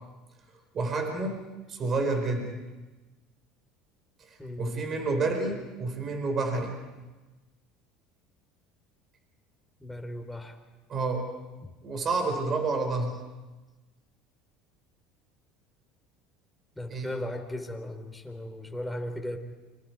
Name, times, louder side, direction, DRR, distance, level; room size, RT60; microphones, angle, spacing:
voice 1, 0.7-1.4 1.7-2.6 4.2-6.7 10.9-11.3 11.8-13.2 16.9-17.1, right 3 dB, 40° right, 4 dB, 4.7 m, -29 dB
voice 2, 4.4-4.8 9.8-10.6 11.6-11.7 16.8-19.4, left 1 dB, 5° left, 4 dB, 3.8 m, -36 dB
30.0 x 25.0 x 4.8 m, 1.2 s
supercardioid pair, 90°, 0 cm